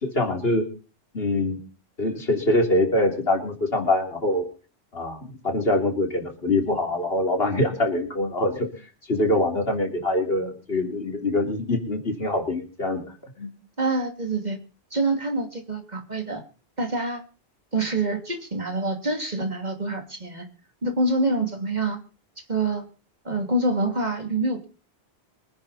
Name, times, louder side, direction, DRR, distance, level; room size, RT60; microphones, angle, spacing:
voice 1, 0.0-0.7 1.1-1.6 2.0-4.4 4.9-8.7 9.1-13.5, left 1 dB, 65° left, 3 dB, 3.5 m, -24 dB
voice 2, 13.8-14.6 14.9-16.4 16.8-17.2 17.7-20.5 20.8-22.0 22.5-22.9 23.2-24.7, right 2 dB, 40° right, 4 dB, 2.9 m, -26 dB
25.0 x 10.0 x 4.2 m, 0.36 s
omnidirectional pair, 1.1 m